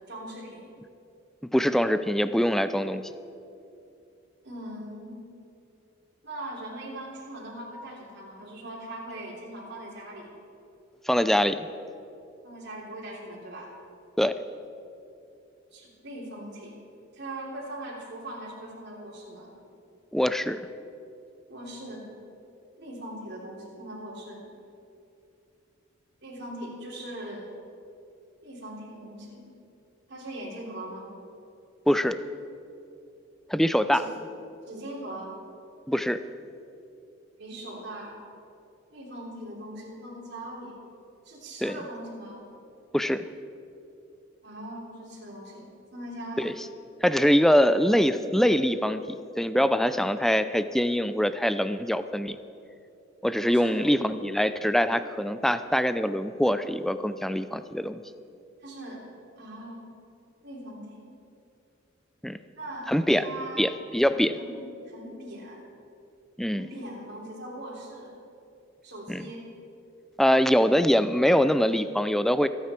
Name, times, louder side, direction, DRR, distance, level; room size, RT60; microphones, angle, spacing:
voice 1, 0.1-0.7 4.4-5.2 6.2-10.3 12.4-13.7 15.7-16.8 17.1-19.5 21.5-22.1 22.8-24.5 26.2-27.5 28.4-29.5 30.1-31.1 33.9-34.1 34.7-35.3 37.4-38.2 38.9-40.8 41.3-42.5 44.4-46.5 53.5-53.9 58.6-59.1 59.4-59.8 60.4-61.1 62.5-63.7 64.4-64.6 64.9-65.6 66.5-68.1 68.8-69.5, right 1 dB, 60° right, -3 dB, 3.5 m, -40 dB
voice 2, 1.5-3.1 11.1-11.7 14.2-14.3 20.1-20.7 31.9-32.2 33.5-34.1 35.9-36.2 41.6-41.8 42.9-43.2 46.4-46.5 47.0-52.4 53.2-58.0 62.2-62.4 62.9-63.3 63.6-64.4 66.4-66.7 69.1-69.2 70.2-72.5, equal, ahead, 12 dB, 0.4 m, -23 dB
25.5 x 9.4 x 4.4 m, 2.7 s
head